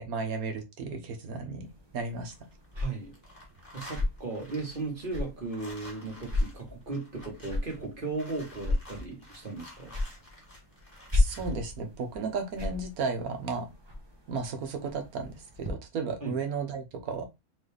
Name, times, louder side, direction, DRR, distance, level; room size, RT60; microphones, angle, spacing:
voice 1, 0.0-1.7 1.9-2.3 11.1-13.7 14.3-17.2, right 4 dB, 85° right, 1.5 m, -34 dB
sound 1, 1.6-15.7, left 2 dB, 20° right, 0.9 m, -35 dB
sound 2, 2.3-2.9 3.1-11.6, left 1 dB, 25° left, 1.7 m, -51 dB
voice 2, 2.7-3.1 3.7-9.9 16.2-16.4, right 3 dB, 40° right, 1.5 m, -36 dB
4.0 x 3.4 x 3.3 m
omnidirectional pair, 1.5 m